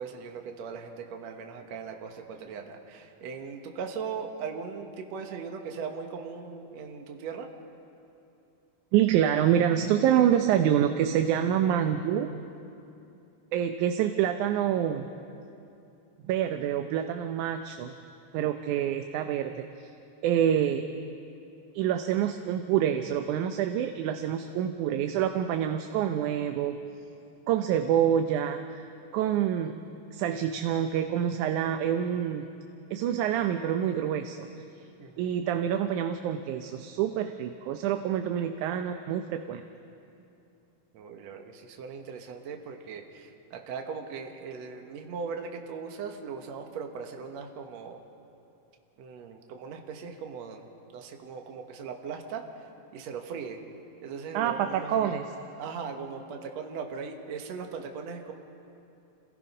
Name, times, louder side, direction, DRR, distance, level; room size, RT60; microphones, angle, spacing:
voice 1, 0.0-7.5 35.0-35.3 40.9-48.0 49.0-50.7 50.9-52.4 52.9-53.6 54.0-55.2 55.6-58.3, right 5 dB, 65° right, 3 dB, 2.4 m, -39 dB
voice 2, 8.9-12.3 13.5-15.1 16.2-18.0 18.3-19.9 20.2-20.9 21.7-26.8 27.5-28.9 29.1-29.8 30.1-32.5 32.9-34.5 35.2-39.6 54.3-55.3, right 10 dB, 90° right, 6 dB, 2.2 m, -27 dB
28.0 x 18.5 x 5.5 m, 2.7 s
omnidirectional pair, 3.4 m